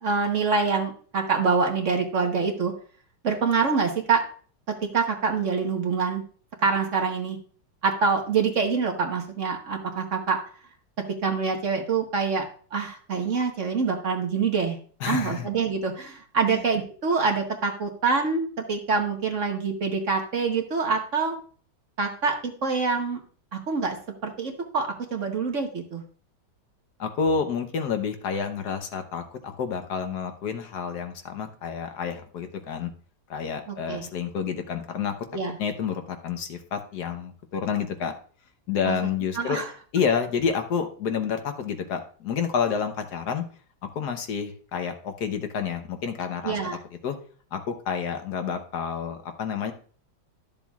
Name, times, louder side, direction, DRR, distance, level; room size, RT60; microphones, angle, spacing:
voice 1, 0.0-2.7 3.2-4.2 4.7-6.2 6.6-7.4 7.8-10.4 11.2-14.8 15.1-21.4 22.0-23.2 23.5-24.0 24.2-26.0 33.7-34.1 35.3-35.6 38.8-38.9 39.3-39.7 46.4-46.8, right 5 dB, 50° right, 3 dB, 1.2 m, -25 dB
voice 2, 15.0-15.5 16.5-16.6 27.0-32.9 33.3-35.3 35.6-38.1 38.7-39.6 39.9-43.4 43.8-46.6 47.0-47.2 47.5-49.7, left 6 dB, 65° left, 7 dB, 1.4 m, -29 dB
12.0 x 7.2 x 2.4 m, 0.44 s
omnidirectional pair, 1.9 m